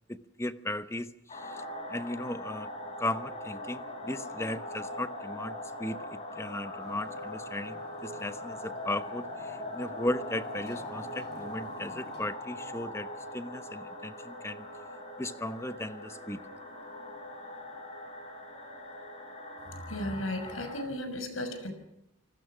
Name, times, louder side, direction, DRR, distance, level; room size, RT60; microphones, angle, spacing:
voice 1, 0.1-1.6 1.9-2.7 3.0-14.7 15.2-16.4, left 1 dB, 15° left, 12 dB, 1.0 m, -36 dB
sound 1, 1.3-20.8, left 1 dB, 30° left, 6.5 m, -41 dB
Motorcycle, 6.8-12.3, left 1 dB, 55° left, 4.6 m, -53 dB
voice 2, 19.7-21.7, left 1 dB, 85° left, 8 dB, 6.1 m, -35 dB
28.5 x 19.5 x 6.1 m, 0.84 s
head